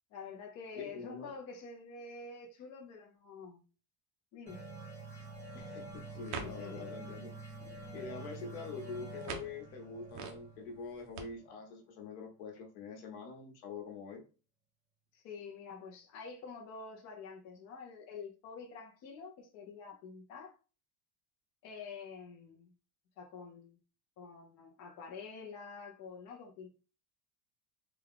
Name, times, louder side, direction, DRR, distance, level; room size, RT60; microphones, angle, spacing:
voice 1, 0.1-3.6 4.3-4.6 6.4-6.9 15.1-20.6 21.6-22.7 23.2-23.8 24.2-26.7, left 5 dB, 35° left, 0.6 m, -48 dB
voice 2, 0.7-1.3 5.5-7.4 7.9-14.2, left 4 dB, 75° left, 1.1 m, -45 dB
sound 1, 4.5-11.7, right 2 dB, 5° right, 1.4 m, -48 dB
sound 2, 5.1-11.2, right 6 dB, 50° right, 0.7 m, -49 dB
3.4 x 2.3 x 3.6 m
cardioid pair, 180°, 43 cm